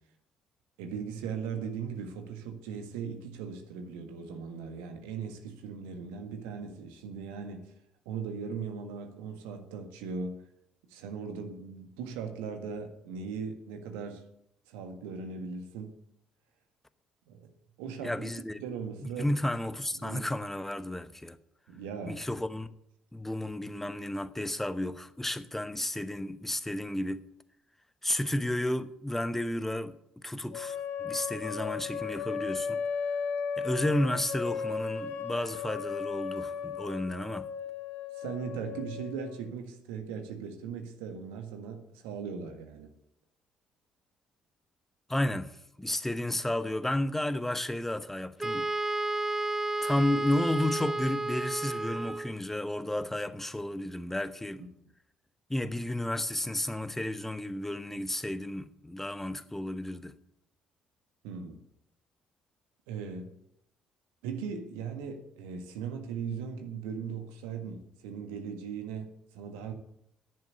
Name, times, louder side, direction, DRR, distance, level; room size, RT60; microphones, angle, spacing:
voice 1, 0.8-7.7 8.0-10.4 10.9-14.2 14.7-15.9 17.3-17.5 17.8-18.3 18.6-19.3 20.0-20.3 21.7-22.2 38.1-42.9 54.6-54.7 61.2-61.6 62.9-63.4 64.2-69.7, right 6 dB, 70° right, 1.5 m, -39 dB
voice 2, 18.0-18.6 19.2-21.4 22.1-22.7 23.1-27.3 28.0-30.0 30.2-32.8 33.6-37.5 45.1-48.7 49.8-54.6 55.5-60.2, left 1 dB, 10° left, 1.0 m, -32 dB
sound 1, 30.5-39.5, left 6 dB, 60° left, 1.1 m, -36 dB
Wind instrument woodwind instrument, 48.4-52.4, right 2 dB, 10° right, 0.5 m, -32 dB
10.5 x 9.3 x 8.2 m
figure-of-eight pair, 45°, 3 cm